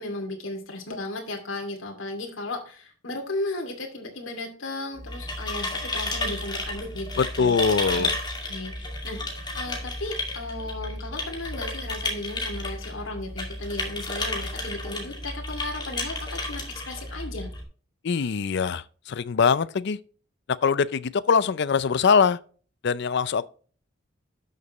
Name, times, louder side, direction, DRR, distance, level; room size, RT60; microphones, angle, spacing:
voice 1, 0.0-7.5 7.9-8.1 8.4-9.2 9.6-17.5, left 2 dB, 75° left, 2.4 m, -35 dB
sound 1, 5.0-17.6, left 2 dB, 20° left, 2.3 m, -32 dB
voice 2, 7.2-8.1 18.0-20.0 20.6-22.4 22.8-23.5, left 5 dB, 60° left, 0.5 m, -22 dB
12.0 x 6.6 x 3.1 m
head